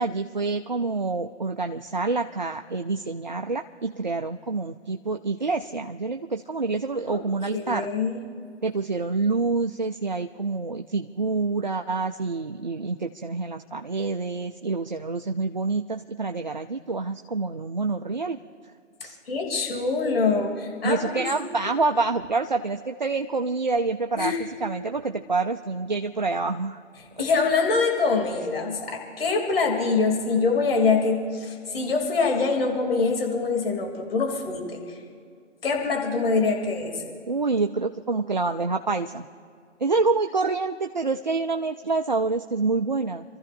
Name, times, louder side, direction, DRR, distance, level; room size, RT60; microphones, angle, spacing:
voice 1, 0.0-7.9 8.6-18.4 19.0-19.2 20.8-24.3 24.6-26.8 37.3-39.3 39.8-43.2, right 3 dB, 40° right, 5 dB, 0.4 m, -27 dB
voice 2, 7.5-8.2 19.3-21.3 21.6-21.7 24.2-24.4 27.2-35.0 35.6-37.0, left 4 dB, 50° left, 1 dB, 3.0 m, -24 dB
29.0 x 14.0 x 2.6 m, 2.3 s
figure-of-eight pair, 145°, 37 cm